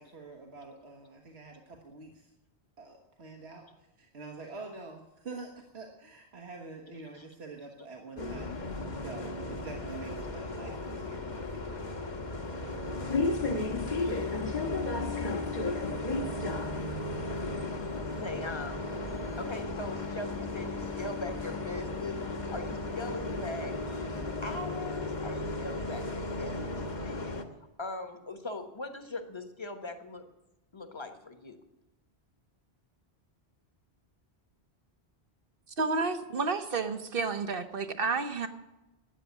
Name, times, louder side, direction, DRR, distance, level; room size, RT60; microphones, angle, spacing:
voice 1, 0.0-2.3 2.8-3.7 4.0-12.0 13.9-14.7, right 3 dB, 80° right, 1 dB, 1.7 m, -46 dB
Bus, 8.2-27.4, left 2 dB, 45° left, 1.4 m, -34 dB
voice 2, 18.1-19.0 19.4-22.2 22.5-27.4 27.8-30.3 30.7-31.6, left 2 dB, 25° left, 7 dB, 1.2 m, -41 dB
voice 3, 35.8-38.5, right 4 dB, 60° right, 8 dB, 1.2 m, -30 dB
13.5 x 9.3 x 8.3 m, 1.0 s
omnidirectional pair, 1.1 m